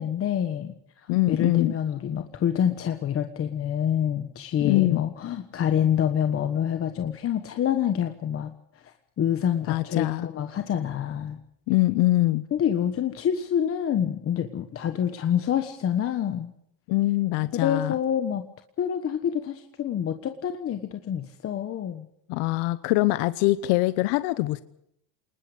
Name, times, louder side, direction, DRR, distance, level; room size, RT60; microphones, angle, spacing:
voice 1, 0.0-8.5 8.8-11.4 12.5-16.5 17.5-18.4 18.8-22.1, left 9 dB, 30° left, 7 dB, 1.3 m, -27 dB
voice 2, 1.1-1.8 4.6-5.0 9.7-10.3 11.7-12.4 16.9-17.9 22.3-24.6, left 18 dB, 60° left, 14 dB, 1.1 m, -23 dB
27.0 x 20.5 x 5.1 m, 0.73 s
cardioid pair, 160°, 47 cm